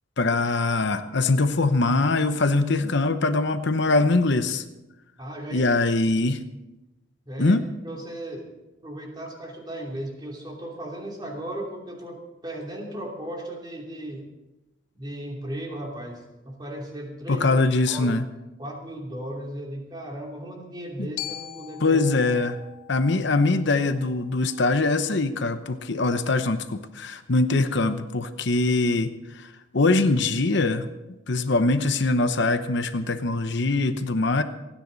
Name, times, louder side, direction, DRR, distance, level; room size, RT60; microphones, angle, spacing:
voice 1, 0.2-4.6 5.5-6.4 7.4-7.6 17.3-18.3 21.0-21.1 21.8-22.6 22.9-29.5 29.7-30.8 31.3-34.4, left 3 dB, 60° left, 9 dB, 0.9 m, -22 dB
voice 2, 5.2-5.7 6.1-6.2 7.3-7.6 7.8-8.5 8.8-14.2 14.9-17.5 17.9-18.2 18.6-22.0, right 1 dB, 20° right, -1 dB, 2.9 m, -36 dB
Glockenspiel, 21.2-25.3, left 14 dB, 80° left, 1.0 m, -42 dB
28.0 x 10.0 x 4.0 m, 1.0 s
head